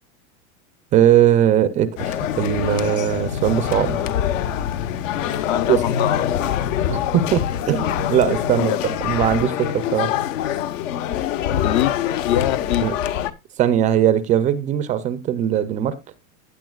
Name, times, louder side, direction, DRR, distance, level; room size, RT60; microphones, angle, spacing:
voice 1, 0.9-4.1 5.7-5.8 6.9-10.1 12.8-12.9 13.6-16.0, right 10 dB, 20° right, 0.4 m, -20 dB
sound 1, 2.0-13.3, left 10 dB, 70° left, 1.1 m, -24 dB
voice 2, 5.4-6.4 8.6-8.8 11.6-12.9, left 12 dB, 40° left, 0.5 m, -24 dB
15.5 x 8.5 x 2.3 m
supercardioid pair, 155°, 40 cm